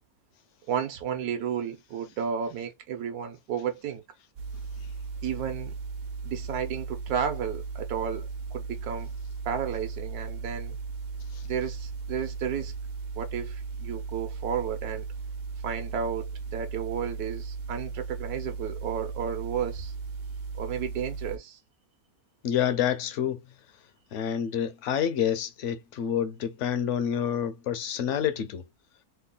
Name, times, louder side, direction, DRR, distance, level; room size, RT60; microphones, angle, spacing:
voice 1, 0.7-4.0 5.2-5.7 6.2-9.1 9.4-10.8 11.4-12.7 13.1-15.1 15.6-19.9 20.5-21.6, right 8 dB, 80° right, 1.2 m, -32 dB
sound 1, 4.4-21.4, right 4 dB, 55° right, 0.7 m, -37 dB
voice 2, 22.4-23.4 24.1-28.6, left 9 dB, 65° left, 0.7 m, -28 dB
3.2 x 2.2 x 3.7 m
omnidirectional pair, 1.6 m